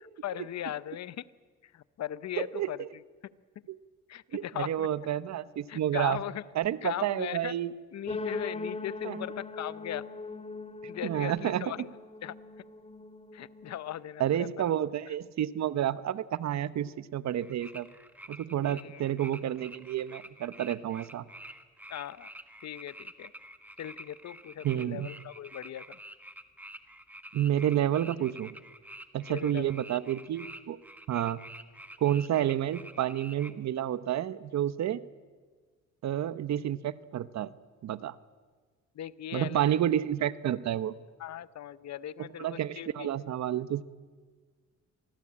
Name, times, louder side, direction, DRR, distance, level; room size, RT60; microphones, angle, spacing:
voice 1, 0.2-1.3 1.6-3.0 4.1-4.9 5.7-6.4 6.8-7.5 7.9-10.1 10.9-11.9 12.2-12.3 13.3-14.7 18.7-19.0 21.9-22.3 22.6-23.3 23.8-26.0 29.3-29.8 38.9-40.1 41.2-43.1, left 11 dB, 60° left, 17 dB, 0.8 m, -39 dB
voice 2, 2.4-2.9 3.7-3.8 4.3-6.2 6.5-7.7 9.0-9.3 11.0-11.6 14.2-17.9 18.3-21.2 24.6-25.1 27.3-28.6 29.1-30.8 31.1-31.4 32.0-35.0 36.0-37.5 37.8-38.2 39.3-41.0 42.2-43.8, right 11 dB, 65° right, 15 dB, 1.0 m, -30 dB
sound 1, 8.1-13.9, left 3 dB, 20° left, 2.3 m, -40 dB
sound 2, 17.4-33.5, right 1 dB, 5° right, 1.5 m, -48 dB
26.0 x 19.5 x 8.7 m, 1.5 s
cardioid pair, 90°, 30 cm